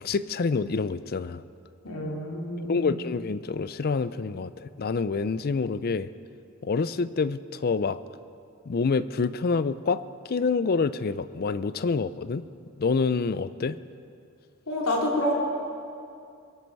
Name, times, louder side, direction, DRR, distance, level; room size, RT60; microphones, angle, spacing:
voice 1, 0.0-1.4 2.7-6.1 6.6-8.0 8.7-10.0 10.3-12.4 12.8-13.8, left 4 dB, 45° left, 15 dB, 0.4 m, -27 dB
voice 2, 1.8-2.8 14.7-15.3, left 1 dB, 85° left, -1 dB, 2.9 m, -28 dB
22.5 x 11.5 x 4.7 m, 2.5 s
head